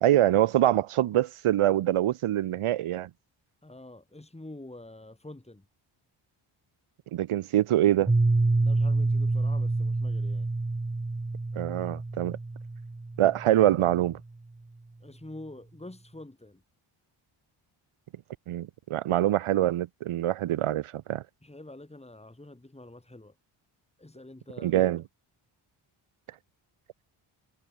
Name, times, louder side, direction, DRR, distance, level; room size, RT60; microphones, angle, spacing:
voice 1, 0.0-3.1 7.1-8.1 11.5-12.4 13.2-14.2 18.5-21.2 24.6-25.0, right 13 dB, 90° right, 1.4 m, -24 dB
voice 2, 3.6-5.6 8.6-10.5 15.0-16.6 21.4-23.3 24.0-24.8, left 1 dB, 10° left, 5.0 m, -46 dB
Piano, 8.1-13.7, right 2 dB, 15° right, 1.3 m, -27 dB
cardioid pair, 80°, 50 cm